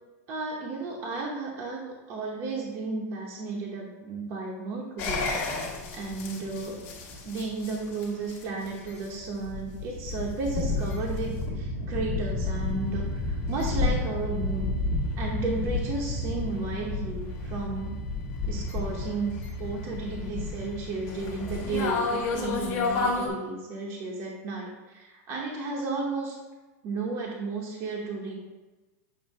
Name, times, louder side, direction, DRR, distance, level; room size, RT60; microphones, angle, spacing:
voice 1, 0.3-5.3 5.9-6.8 7.2-14.7 15.2-17.9 18.5-26.4 26.8-28.4, right 3 dB, 30° right, -2 dB, 0.9 m, -33 dB
sound 1, 5.0-23.3, left 3 dB, 30° left, 1.4 m, -31 dB
7.2 x 2.7 x 5.3 m, 1.2 s
supercardioid pair, 160°, 9 cm